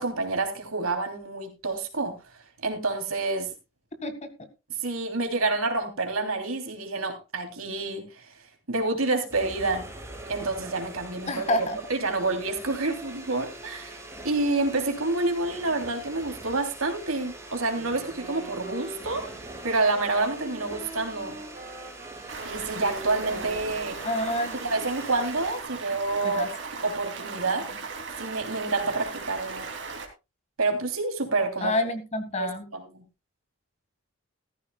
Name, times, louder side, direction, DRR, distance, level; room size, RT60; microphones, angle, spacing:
voice 1, 0.0-2.1 2.6-3.5 4.8-8.3 8.7-9.8 10.3-14.0 14.2-19.3 19.6-21.4 22.4-24.0 24.5-26.5 26.8-27.7 28.2-29.7 30.6-31.7 32.4-33.0, right 3 dB, 85° right, 5 dB, 3.2 m, -28 dB
sound 1, 9.3-25.6, right 2 dB, 15° right, 3.2 m, -43 dB
voice 2, 11.3-11.8 24.0-24.6 26.2-26.5 31.6-32.6, left 1 dB, 30° left, 8 dB, 1.7 m, -28 dB
Wind instrument woodwind instrument, 17.7-24.9, right 3 dB, 30° right, 4.8 m, -43 dB
Stream, 22.3-30.1, right 4 dB, 60° right, 2.9 m, -38 dB
16.0 x 14.0 x 2.3 m, 0.27 s
head